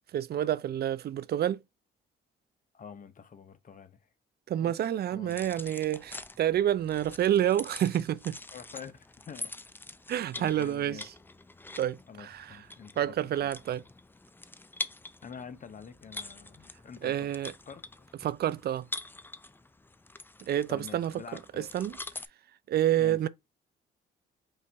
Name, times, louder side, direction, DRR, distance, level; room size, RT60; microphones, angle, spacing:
voice 1, 0.1-1.6 4.5-8.4 10.1-11.1 11.8-12.6 13.0-13.8 17.0-17.5 18.2-18.9 20.4-22.0 22.7-23.3, right 11 dB, 55° right, 0.4 m, -29 dB
voice 2, 2.7-4.0 4.6-4.8 5.1-5.4 8.5-9.6 10.4-11.0 12.1-13.1 13.4-13.5 15.2-17.1 17.6-18.0 20.7-21.7 23.0-23.2, left 6 dB, 40° left, 0.8 m, -46 dB
sound 1, 5.3-22.3, left 2 dB, 10° left, 0.4 m, -45 dB
5.5 x 2.5 x 3.4 m
cardioid pair, 90°, 20 cm